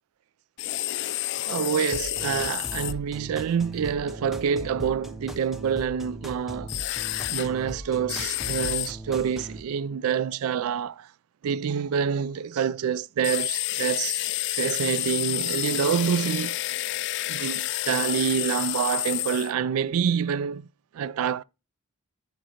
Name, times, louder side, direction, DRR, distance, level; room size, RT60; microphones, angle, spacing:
sound 1, 0.6-2.9 6.7-7.5 8.1-8.9 13.2-19.5, left 16 dB, 55° left, 0.3 m, -29 dB
voice 1, 1.5-7.0 7.3-11.1 11.4-14.2 14.5-16.6 17.3-20.7 20.9-21.4, right 7 dB, 80° right, 0.3 m, -27 dB
sound 2, 1.9-9.6, equal, ahead, 0.6 m, -39 dB
15.0 x 5.1 x 2.8 m
head